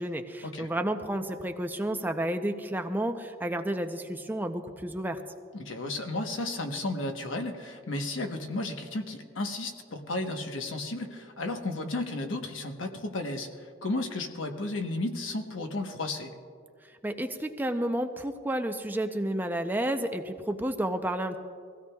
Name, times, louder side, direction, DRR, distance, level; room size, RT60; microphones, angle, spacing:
voice 1, 0.0-5.2 17.0-21.4, right 1 dB, 10° right, 6 dB, 0.5 m, -31 dB
voice 2, 5.5-16.3, left 2 dB, 75° left, 5 dB, 1.1 m, -33 dB
22.5 x 16.0 x 2.3 m, 2.1 s
head